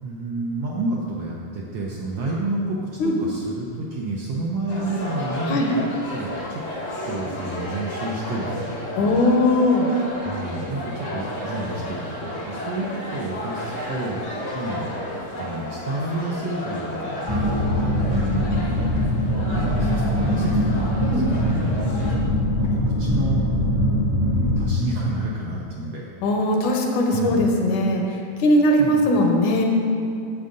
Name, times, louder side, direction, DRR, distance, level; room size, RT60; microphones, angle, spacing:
voice 1, 0.0-6.6 7.1-8.6 9.0-9.2 10.2-12.0 12.4-14.2 14.5-14.9 15.4-17.5 18.0-18.7 19.3-21.9 22.5-23.4 24.2-26.1 27.1-27.5 28.8-29.0, right 2 dB, 75° right, -3 dB, 1.4 m, -30 dB
sound 1, 4.7-22.2, left 1 dB, 60° left, 0.7 m, -32 dB
voice 2, 9.0-9.9 18.5-18.6 21.0-21.3 26.2-28.0 28.4-29.7, left 1 dB, 80° left, 2 dB, 2.3 m, -19 dB
sound 2, 17.3-24.6, left 1 dB, 30° right, 0.5 m, -22 dB
9.2 x 7.4 x 3.9 m, 2.6 s
omnidirectional pair, 3.5 m